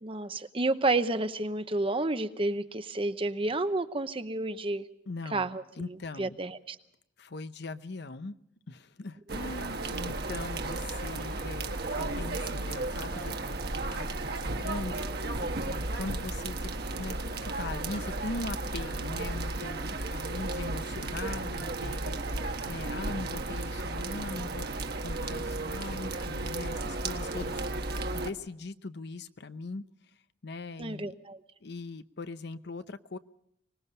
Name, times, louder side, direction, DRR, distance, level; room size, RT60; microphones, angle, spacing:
voice 1, 0.0-4.8 5.3-6.8 9.3-9.4 30.8-31.4, right 2 dB, 30° right, 11 dB, 0.9 m, -30 dB
voice 2, 5.1-6.4 7.2-8.4 8.7-13.6 13.9-15.1 15.7-24.7 25.0-27.6 28.1-29.8 30.4-31.2 31.6-33.2, left 3 dB, 65° left, 12 dB, 0.8 m, -40 dB
sound 1, 9.3-28.3, right 2 dB, 60° right, 1.3 m, -34 dB
24.5 x 19.5 x 5.5 m, 0.77 s
head